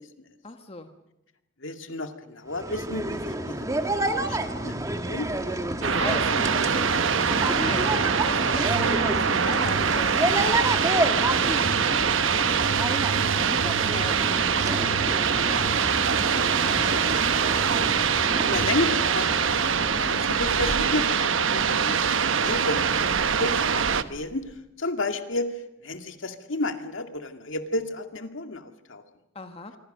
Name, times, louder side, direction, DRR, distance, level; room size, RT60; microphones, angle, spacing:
voice 1, 0.4-0.9 5.8-17.0 29.3-29.7, left 2 dB, 30° left, 6 dB, 1.4 m, -40 dB
voice 2, 1.6-4.8 5.1-5.3 18.4-24.4 24.8-25.5 25.8-29.0, left 2 dB, 70° left, 7 dB, 2.2 m, -32 dB
sound 1, 2.5-21.0, right 1 dB, 15° right, 1.7 m, -30 dB
sound 2, 5.8-24.0, right 6 dB, 70° right, 1.1 m, -24 dB
sound 3, 10.1-24.6, equal, 40° right, 3.9 m, -45 dB
26.5 x 24.0 x 6.7 m, 0.89 s
head